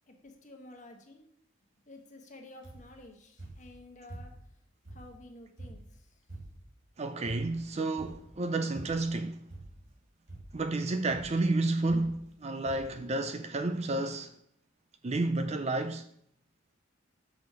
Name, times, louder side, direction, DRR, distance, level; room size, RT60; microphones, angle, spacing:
voice 1, 0.1-1.2 1.9-4.3 4.9-6.2, left 2 dB, 35° left, 1.2 m, -52 dB
sound 1, 2.6-3.0 3.4-4.5 4.8-6.8 7.2-7.7 8.0-8.4 8.8-9.2 9.5-10.0 10.3-10.7 11.1-11.4 11.9-12.4 12.7-13.0 13.7-13.8 14.0-14.1, right 1 dB, 65° right, 2.8 m, -48 dB
voice 2, 7.0-9.4 10.5-14.3 15.0-16.0, right 2 dB, 30° right, 0.4 m, -31 dB
6.2 x 5.1 x 6.7 m
head